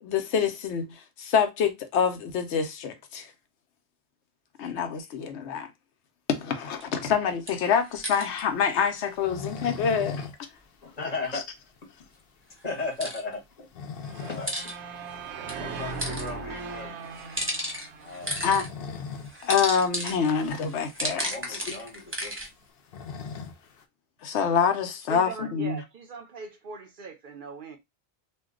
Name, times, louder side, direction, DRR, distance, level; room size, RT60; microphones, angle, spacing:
voice 1, 0.0-3.3 4.6-5.7 6.3-10.2 18.4-18.7 19.4-21.3 24.2-25.8, left 7 dB, 90° left, 1.0 m, -26 dB
sound 1, 6.8-6.9 7.5-8.4 12.7-13.2 14.2-14.7 15.5-16.3 17.1-18.7 19.3-22.5, equal, 15° right, 0.8 m, -34 dB
sound 2, 8.0-10.4 10.7-10.8 11.2-11.3 11.8-11.9 13.4-14.6 15.0-15.1 16.7-16.9 18.1-19.4 19.7-19.8 20.1-20.2 20.9-21.0 21.2-23.8, left 5 dB, 65° left, 0.8 m, -39 dB
voice 2, 10.8-11.5 11.8-11.9 12.6-13.7 14.2-15.3 15.6-16.9 18.0-18.5 21.2-22.3, left 3 dB, 40° left, 1.0 m, -36 dB
sound 3, 14.0-19.1, right 4 dB, 85° right, 0.9 m, -39 dB
voice 3, 25.1-27.8, right 4 dB, 60° right, 0.6 m, -40 dB
2.5 x 2.2 x 3.6 m
omnidirectional pair, 1.1 m